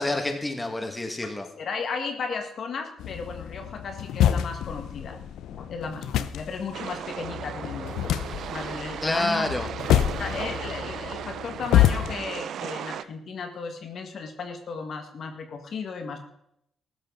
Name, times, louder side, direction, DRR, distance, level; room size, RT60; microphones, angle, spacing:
voice 1, 0.0-1.5 9.0-9.7, left 1 dB, 15° left, 5 dB, 2.0 m, -28 dB
voice 2, 1.6-5.2 5.5-9.5 10.2-16.2, left 5 dB, 55° left, 5 dB, 1.8 m, -35 dB
sound 1, 3.0-12.2, left 11 dB, 80° left, 0.7 m, -27 dB
sound 2, 6.7-13.0, right 9 dB, 70° right, 0.5 m, -36 dB
15.0 x 12.5 x 4.0 m, 0.74 s
cardioid pair, 90°, 0 cm